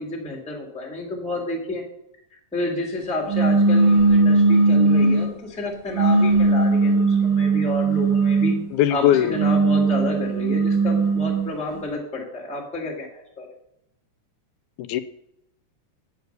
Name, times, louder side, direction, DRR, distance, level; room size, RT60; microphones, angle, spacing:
voice 1, 0.0-1.8 2.3-8.6 8.9-13.5, left 2 dB, 5° left, -1 dB, 1.2 m, -30 dB
sound 1, 3.3-5.3 5.9-8.6 9.2-11.5, right 3 dB, 55° right, 2.4 m, -18 dB
voice 2, 8.7-9.3 14.8-15.0, left 12 dB, 85° left, 11 dB, 2.0 m, -19 dB
9.6 x 4.9 x 6.6 m, 0.80 s
omnidirectional pair, 3.5 m